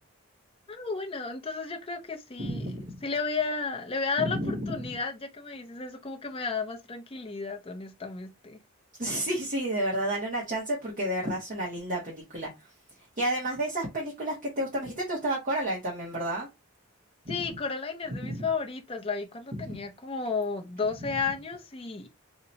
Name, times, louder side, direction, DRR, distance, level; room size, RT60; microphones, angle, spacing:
voice 1, 0.7-2.7 3.0-8.6 17.3-22.1, left 4 dB, 25° left, 0.5 m, -33 dB
voice 2, 2.4-2.8 4.2-4.8 9.0-12.5 13.2-16.5 17.2-17.4 18.1-18.4 19.6-19.7, right 1 dB, 40° right, 0.9 m, -31 dB
2.8 x 2.1 x 3.9 m
head